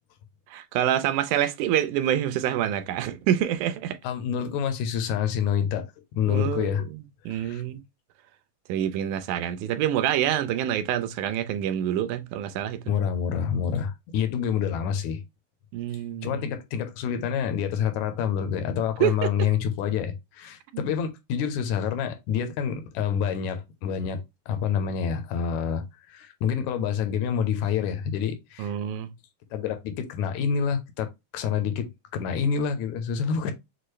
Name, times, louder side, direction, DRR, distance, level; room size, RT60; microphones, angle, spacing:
voice 1, 0.5-4.0 6.3-7.8 8.7-12.8 15.7-16.4 19.0-19.3 20.7-20.9 28.6-29.1, right 11 dB, 85° right, 2.1 m, -27 dB
voice 2, 4.0-6.8 7.3-7.6 12.9-15.2 16.2-28.7 29.5-33.5, left 7 dB, 80° left, 2.0 m, -27 dB
6.3 x 2.3 x 3.1 m
omnidirectional pair, 3.5 m